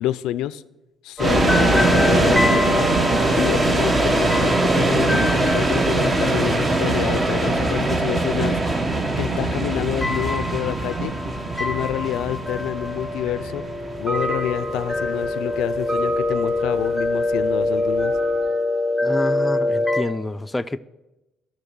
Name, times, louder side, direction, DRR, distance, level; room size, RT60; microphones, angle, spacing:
voice 1, 0.0-0.6 1.0-2.9 3.3-8.6 9.2-11.1 11.6-13.6 14.0-18.1, left 13 dB, 80° left, 0.3 m, -27 dB
sound 1, 1.2-20.0, left 2 dB, 5° right, 1.5 m, -26 dB
sound 2, 1.2-18.2, right 2 dB, 30° right, 1.2 m, -22 dB
voice 2, 19.0-20.8, left 1 dB, 15° left, 0.4 m, -27 dB
9.8 x 6.5 x 7.0 m
supercardioid pair, 80°, 0 cm